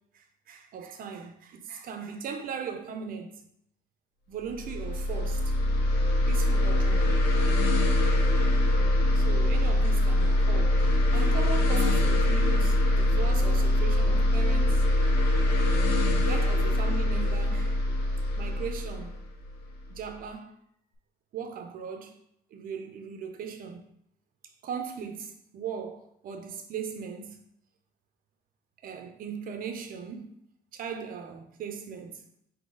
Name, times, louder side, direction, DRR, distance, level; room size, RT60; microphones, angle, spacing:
voice 1, 0.1-3.3 4.3-5.5 6.3-7.6 9.1-14.8 15.8-17.8 18.4-19.1 19.9-20.5 21.3-22.2 22.5-23.8 24.6-27.4 28.8-30.4 30.7-32.2, right 6 dB, 55° right, 0.7 m, -38 dB
sound 1, 4.5-19.9, left 1 dB, 75° left, 0.7 m, -23 dB
3.9 x 2.8 x 3.8 m
cardioid pair, 110°, 17 cm